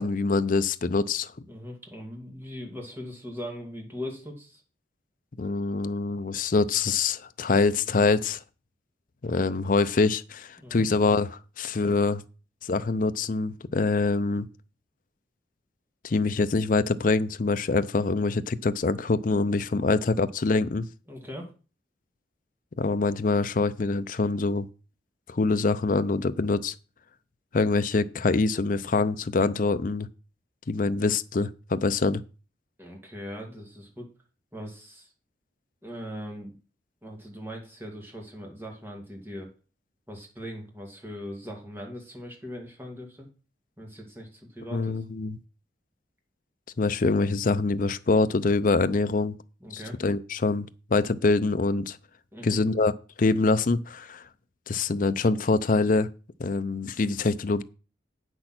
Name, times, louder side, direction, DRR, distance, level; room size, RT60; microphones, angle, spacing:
voice 1, 0.0-1.3 5.4-8.4 9.2-11.3 11.6-12.2 12.6-14.5 16.0-20.9 22.8-24.7 25.3-26.7 27.5-30.1 30.7-32.2 44.7-45.4 46.8-49.3 49.7-50.7 50.9-52.0 52.4-52.9 53.2-54.2 54.7-56.1 56.4-57.6, left 3 dB, 45° left, 0.5 m, -25 dB
voice 2, 1.5-4.6 10.6-10.9 21.1-21.5 32.8-34.1 34.5-35.1 35.8-36.6 37.0-39.5 40.1-43.3 43.8-44.9 49.6-50.0 52.3-52.6, equal, 10° right, 2.2 m, -40 dB
8.8 x 6.3 x 5.9 m
head